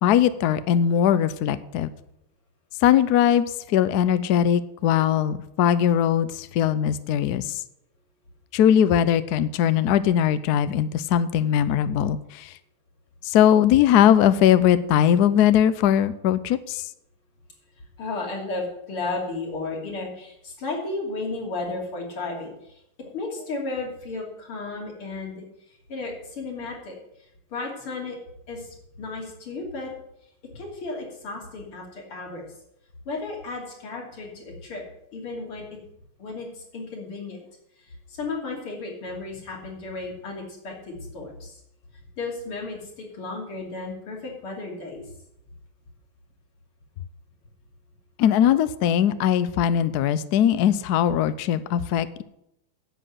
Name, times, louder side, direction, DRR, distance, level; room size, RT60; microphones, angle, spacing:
voice 1, 0.0-1.9 2.8-7.6 8.5-12.5 13.2-16.8 48.2-52.2, left 10 dB, 70° left, 14 dB, 0.9 m, -20 dB
voice 2, 18.0-25.5 25.9-27.0 27.5-28.2 28.5-29.9 30.5-32.4 33.1-34.8 35.1-35.7 36.2-37.4 37.8-41.6 42.2-45.0, left 3 dB, 90° left, -1 dB, 3.8 m, -34 dB
10.0 x 7.8 x 7.9 m, 0.79 s
omnidirectional pair, 2.3 m